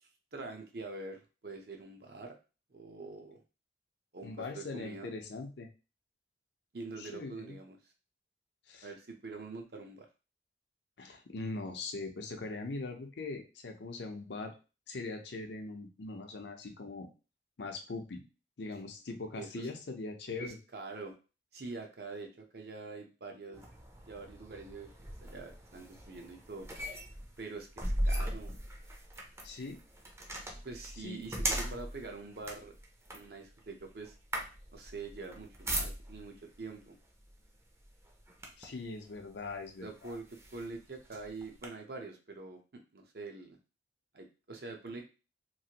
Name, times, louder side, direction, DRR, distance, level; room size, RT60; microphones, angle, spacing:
voice 1, 0.0-2.3 2.7-3.4 4.1-5.1 6.7-7.8 8.8-10.1 19.4-19.7 20.4-21.1 21.5-23.6 24.1-24.9 25.2-26.7 27.4-28.5 30.6-32.7 33.1-34.1 34.7-37.0 39.8-40.2 40.5-43.6 44.1-45.1, right 3 dB, 60° right, 3 dB, 0.6 m, -45 dB
voice 2, 4.2-5.7 7.0-7.6 8.7-8.9 11.0-14.5 14.9-17.1 17.6-18.2 18.6-20.6 29.4-29.8 31.0-31.8 38.6-40.2, left 3 dB, 80° left, 4 dB, 0.6 m, -41 dB
sound 1, 23.5-36.4 37.2-37.4 37.8-38.8 39.5-39.6 40.0-41.7, right 1 dB, 15° right, 0.5 m, -39 dB
3.0 x 2.5 x 2.8 m, 0.33 s
head